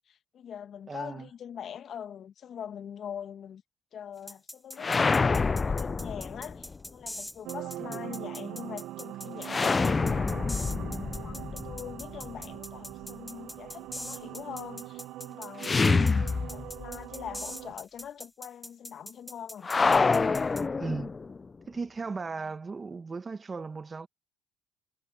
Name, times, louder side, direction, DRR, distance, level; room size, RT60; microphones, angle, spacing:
voice 1, 0.1-3.6 3.9-10.7 11.2-15.8 16.5-19.7, left 9 dB, 55° left, 1.9 m, -43 dB
voice 2, 0.9-1.3 7.7-8.0 15.8-16.2 20.8-21.1 21.7-24.1, right 4 dB, 30° right, 1.2 m, -36 dB
sound 1, 4.3-20.6, left 1 dB, 5° left, 1.2 m, -42 dB
sound 2, 4.8-6.8 9.4-12.4 15.6-17.0 17.3-17.4 19.6-21.4, left 4 dB, 30° left, 0.5 m, -27 dB
sound 3, 7.4-17.7, right 15 dB, 70° right, 1.0 m, -42 dB
supercardioid pair, 70°, 0 cm